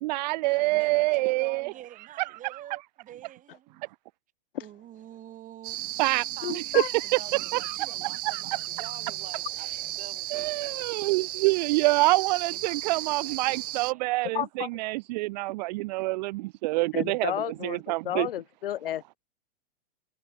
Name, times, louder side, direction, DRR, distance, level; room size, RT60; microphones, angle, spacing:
voice 1, 0.0-1.7 2.2-2.6 6.0-7.0 7.3-8.6 10.3-17.3 17.6-18.3, right 22 dB, 45° right, 0.9 m, -27 dB
voice 2, 0.7-3.8 4.6-5.8 6.4-6.5 7.0-11.4 12.5-13.6 13.9-14.0, right 12 dB, 25° right, 7.4 m, -47 dB
sound 1, 5.6-13.9, right 14 dB, 65° right, 1.2 m, -35 dB
voice 3, 6.4-6.9 14.3-14.7 16.9-19.2, left 12 dB, 70° left, 3.3 m, -32 dB
hypercardioid pair, 130°, 29 cm